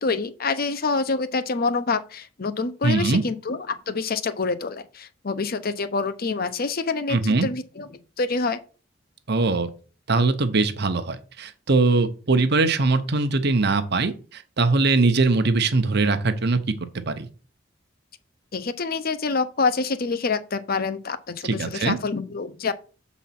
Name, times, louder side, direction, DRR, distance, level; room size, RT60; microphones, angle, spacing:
voice 1, 0.0-7.9 8.2-8.6 18.5-22.7, left 4 dB, 50° left, 0.7 m, -26 dB
voice 2, 2.8-3.2 7.1-7.5 9.3-9.7 10.1-16.6 17.1-17.3 21.4-22.0, right 3 dB, 60° right, 0.9 m, -21 dB
7.2 x 4.1 x 5.9 m
head